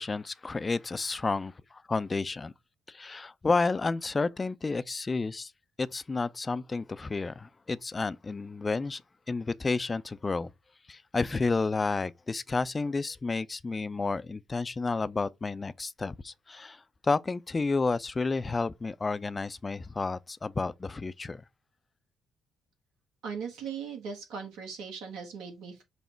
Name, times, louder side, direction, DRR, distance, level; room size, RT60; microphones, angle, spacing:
voice 1, 0.0-2.5 2.9-5.5 5.8-9.0 9.3-10.5 10.9-21.4, left 3 dB, 30° left, 0.3 m, -31 dB
voice 2, 23.2-25.8, right 6 dB, 70° right, 1.0 m, -39 dB
5.5 x 2.1 x 4.4 m
hypercardioid pair, 50°, 0 cm